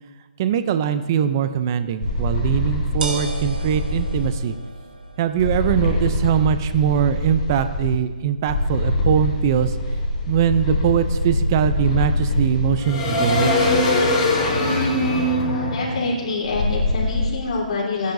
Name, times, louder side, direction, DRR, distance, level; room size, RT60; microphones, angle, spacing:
voice 1, 0.4-4.6 5.2-9.8 10.3-13.7, right 9 dB, 25° right, 11 dB, 0.5 m, -21 dB
sound 1, 1.9-11.9, right 3 dB, 85° right, 3.0 m, -39 dB
sound 2, 2.0-4.3 5.4-7.9 8.5-17.2, left 1 dB, 20° left, 3.6 m, -22 dB
voice 2, 15.5-18.1, left 3 dB, 45° left, -5 dB, 3.5 m, -26 dB
28.0 x 10.5 x 2.6 m, 1.3 s
hypercardioid pair, 170°, 5 cm